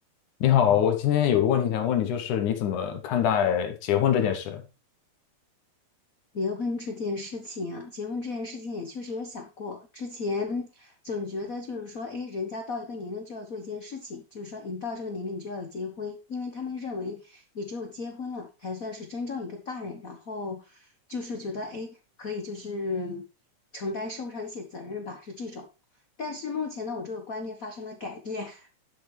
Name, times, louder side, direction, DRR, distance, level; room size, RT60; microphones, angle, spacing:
voice 1, 0.4-4.6, left 9 dB, 85° left, 2.8 m, -23 dB
voice 2, 6.3-23.2 23.7-25.7 26.2-28.7, left 3 dB, 55° left, 0.9 m, -34 dB
11.5 x 7.1 x 3.3 m
omnidirectional pair, 3.4 m